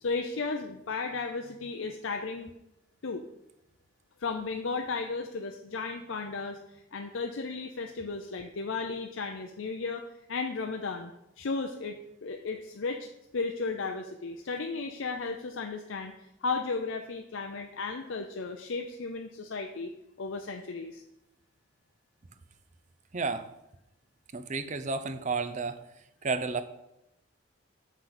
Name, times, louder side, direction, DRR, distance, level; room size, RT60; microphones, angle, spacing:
voice 1, 0.0-2.5 3.0-3.3 4.2-11.1 11.4-16.1 16.4-19.9 20.2-21.0, left 4 dB, 80° left, 4 dB, 0.6 m, -34 dB
voice 2, 23.1-23.5 24.3-25.8 26.2-26.6, right 4 dB, 40° right, 11 dB, 0.6 m, -31 dB
6.7 x 6.0 x 5.8 m, 0.86 s
head